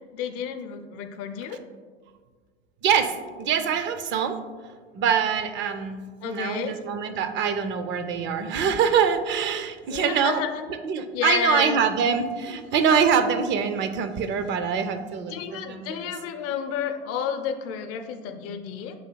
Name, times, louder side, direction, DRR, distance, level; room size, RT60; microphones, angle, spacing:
voice 1, 0.0-1.6 6.2-6.8 9.9-10.6 11.1-11.8 15.3-18.9, left 8 dB, 50° left, 6 dB, 0.5 m, -31 dB
voice 2, 2.8-4.4 4.9-10.4 10.7-16.0, right 7 dB, 35° right, 9 dB, 0.4 m, -24 dB
7.6 x 2.7 x 2.2 m, 1.5 s
hypercardioid pair, 95°, 32 cm